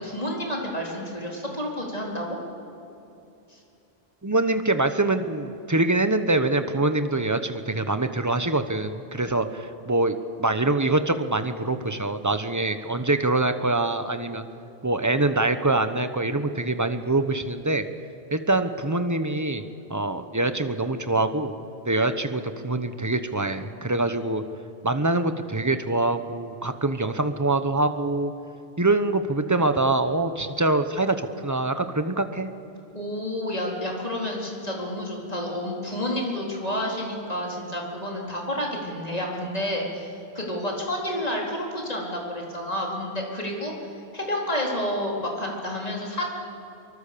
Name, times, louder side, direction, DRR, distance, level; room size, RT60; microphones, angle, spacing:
voice 1, 0.0-2.4 3.5-3.6 32.9-40.1 40.3-43.7 44.1-46.3, left 1 dB, 40° left, -2 dB, 4.2 m, -30 dB
voice 2, 4.2-14.5 14.8-17.9 18.3-19.6 19.9-21.5 21.9-24.4 24.8-28.3 28.8-32.5, right 2 dB, 20° right, 9 dB, 1.0 m, -24 dB
24.5 x 23.5 x 6.9 m, 2.8 s
omnidirectional pair, 1.1 m